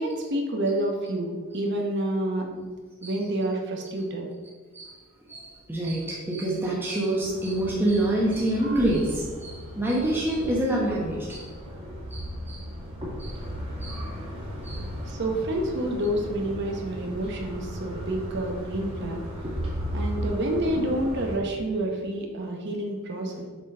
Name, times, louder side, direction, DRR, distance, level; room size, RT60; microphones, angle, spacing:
voice 1, 0.0-2.7 3.0-4.3 15.1-19.2 19.9-23.4, right 1 dB, 55° right, 1 dB, 1.1 m, -28 dB
voice 2, 5.3-11.5 12.1-12.6 13.2-13.4 13.8-14.1 14.6-14.9, right 1 dB, 10° right, -5 dB, 1.0 m, -27 dB
sound 1, 7.2-21.4, equal, 25° right, 2.0 m, -36 dB
7.0 x 4.1 x 5.6 m, 1.5 s
head